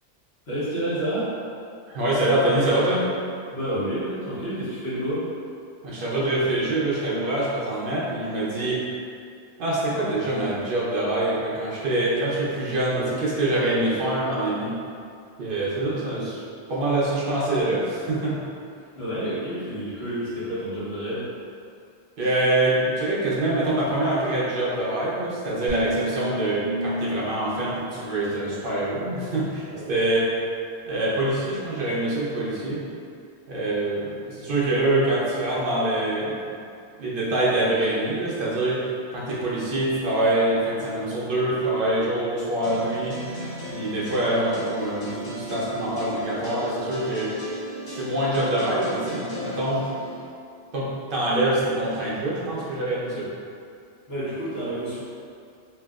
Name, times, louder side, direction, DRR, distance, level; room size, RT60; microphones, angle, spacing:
voice 1, 0.5-1.4 3.5-5.3 18.9-21.3 29.7-29.8 54.1-55.1, right 1 dB, 85° left, -11 dB, 1.4 m, -29 dB
voice 2, 1.9-3.0 5.8-8.8 9.6-14.8 15.4-16.4 16.7-18.3 22.2-30.3 30.9-32.8 33.5-36.4 37.0-43.2 43.7-47.3 47.9-49.8 50.7-53.3, right 1 dB, 65° right, -7 dB, 0.9 m, -25 dB
sound 1, 25.7-29.0, equal, 90° right, 0.9 m, -32 dB
sound 2, 42.6-50.2, equal, 65° left, 1.0 m, -35 dB
3.0 x 2.6 x 2.4 m, 2.4 s
omnidirectional pair, 1.0 m